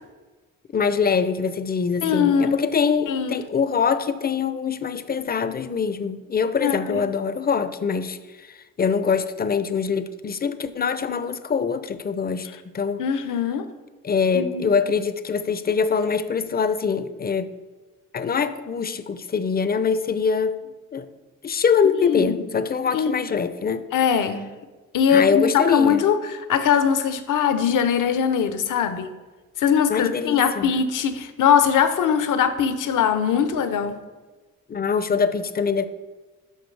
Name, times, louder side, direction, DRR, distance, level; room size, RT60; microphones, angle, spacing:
voice 1, 0.7-12.5 12.7-13.0 14.0-17.5 18.1-21.1 21.4-23.8 25.1-26.1 29.9-30.7 34.7-35.8, left 6 dB, 30° left, 0.6 m, -24 dB
voice 2, 2.0-2.6 3.1-3.4 6.6-7.0 13.0-13.6 14.3-14.7 21.9-22.3 22.9-23.1 23.9-24.5 24.9-26.2 26.5-29.1 29.6-34.0, left 7 dB, 65° left, 0.9 m, -21 dB
12.0 x 5.0 x 3.3 m
supercardioid pair, 65°, 34 cm